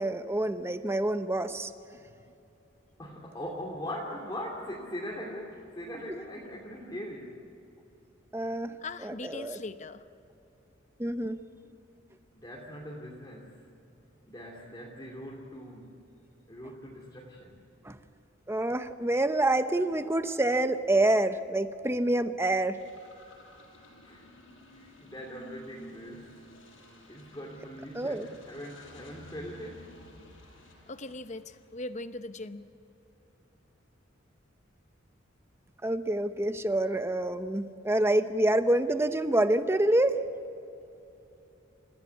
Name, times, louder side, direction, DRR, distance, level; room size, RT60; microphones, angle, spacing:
voice 1, 0.0-1.7 8.3-8.7 9.0-9.6 11.0-11.4 17.8-18.0 18.5-22.8 27.9-28.3 35.8-40.2, right 1 dB, 15° right, 10 dB, 0.8 m, -27 dB
voice 2, 1.9-2.2 8.8-10.1 30.9-32.7, left 2 dB, 35° left, 11 dB, 0.8 m, -40 dB
voice 3, 3.0-7.5 12.3-13.7 14.3-16.0 16.5-17.7 24.0-24.2 24.7-26.3 27.1-30.0, equal, 20° left, -4 dB, 2.7 m, -41 dB
sound 1, 22.7-32.3, equal, 85° left, 6.7 m, -53 dB
29.0 x 15.5 x 8.3 m, 2.8 s
head